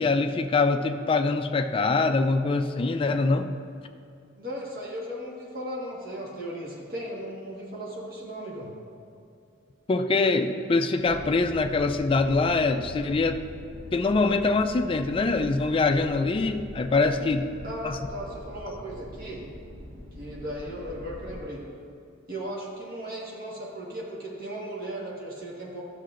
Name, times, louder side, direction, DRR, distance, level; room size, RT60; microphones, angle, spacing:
voice 1, 0.0-3.5 9.9-13.4 13.9-17.5 17.8-18.0, left 3 dB, 25° left, 7 dB, 0.3 m, -24 dB
voice 2, 4.4-8.7 17.6-19.4 20.2-21.6 22.3-25.8, equal, 45° right, -3 dB, 1.4 m, -36 dB
sound 1, 11.0-21.4, left 1 dB, 75° right, 1.9 m, -43 dB
11.5 x 6.5 x 2.5 m, 2.4 s
head